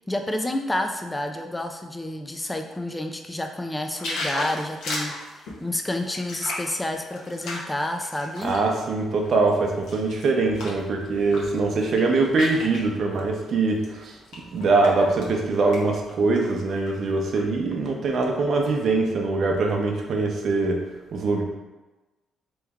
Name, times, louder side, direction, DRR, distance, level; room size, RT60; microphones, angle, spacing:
voice 1, 0.1-8.5, left 1 dB, 15° left, 5 dB, 0.4 m, -29 dB
sound 1, 3.9-8.7 9.2-10.8 11.2-11.5 11.8-12.9 13.7-13.8 14.3-15.3 15.6-15.8 16.1-16.9 17.4-17.5, left 2 dB, 85° left, 0.9 m, -34 dB
voice 2, 8.4-14.2 14.5-20.8 21.1-21.4, right 3 dB, 60° right, 2 dB, 0.7 m, -23 dB
3.4 x 3.1 x 3.5 m, 1.1 s
cardioid pair, 90°, 0 cm